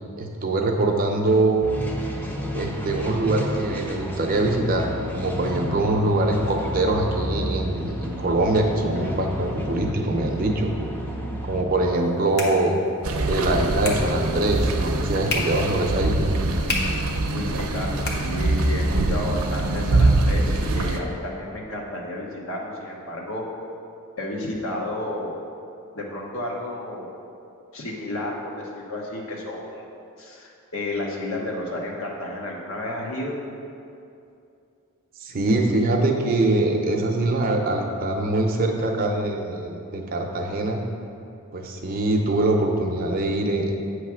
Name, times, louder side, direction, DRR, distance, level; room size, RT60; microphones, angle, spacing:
voice 1, 0.2-1.7 2.5-10.7 11.4-12.8 13.2-16.3 35.2-40.8 41.5-43.7, right 2 dB, 40° right, 2 dB, 0.6 m, -23 dB
sound 1, 1.6-11.6, equal, 10° left, 0.5 m, -32 dB
sound 2, 11.8-18.9, left 2 dB, 50° left, 0.9 m, -35 dB
sound 3, 13.0-21.0, right 2 dB, 80° right, 0.6 m, -23 dB
voice 2, 17.3-23.4 24.2-25.3 25.9-27.1 27.7-29.8 30.2-33.4, left 1 dB, 70° left, -1 dB, 1.1 m, -32 dB
8.2 x 3.2 x 6.2 m, 2.6 s
head